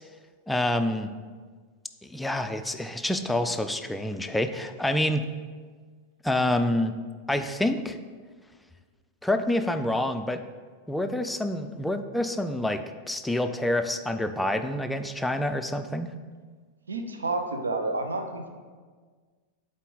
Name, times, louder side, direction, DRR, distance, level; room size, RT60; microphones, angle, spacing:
voice 1, 0.5-1.1 2.0-5.2 6.2-6.9 7.3-8.0 9.2-10.4 10.9-16.1, left 1 dB, 5° left, 8 dB, 0.4 m, -27 dB
voice 2, 16.9-18.5, right 2 dB, 75° right, 6 dB, 0.6 m, -30 dB
8.2 x 3.9 x 3.9 m, 1.5 s
figure-of-eight pair, 90°, 0 cm